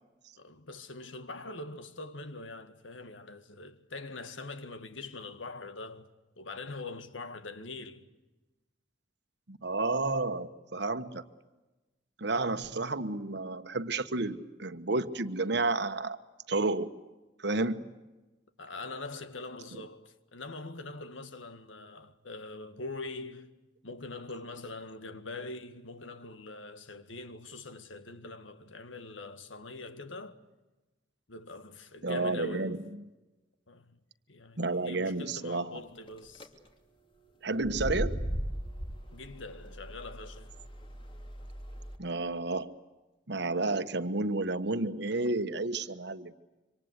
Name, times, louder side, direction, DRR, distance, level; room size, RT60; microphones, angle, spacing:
voice 1, 0.3-6.1 6.4-8.1 18.6-23.5 23.8-30.4 31.3-32.8 33.7-34.0 34.3-36.5 39.1-40.5, left 3 dB, 85° left, 1.9 m, -43 dB
voice 2, 9.5-11.2 12.2-16.2 16.5-16.9 17.4-17.9 32.0-32.8 34.6-35.7 37.4-38.2 42.0-42.7 43.3-46.3, right 2 dB, 60° right, 1.3 m, -31 dB
sound 1, 36.1-36.4 37.5-42.0, equal, 25° left, 2.8 m, -37 dB
27.0 x 25.5 x 8.3 m
head